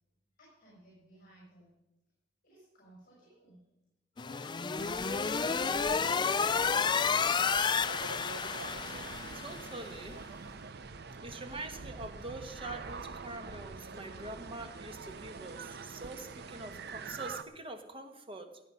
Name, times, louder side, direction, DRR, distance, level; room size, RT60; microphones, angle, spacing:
voice 1, 0.4-1.7 2.4-3.6 4.1-5.0 5.3-5.8, right 1 dB, 50° left, -5 dB, 5.9 m, -58 dB
sound 1, 4.2-9.7, left 5 dB, 25° left, 0.4 m, -30 dB
sound 2, 4.8-17.4, right 4 dB, 60° right, 0.6 m, -45 dB
voice 2, 9.3-10.2 11.2-18.6, right 2 dB, 30° right, 7 dB, 1.3 m, -44 dB
17.0 x 9.1 x 5.5 m, 0.95 s
head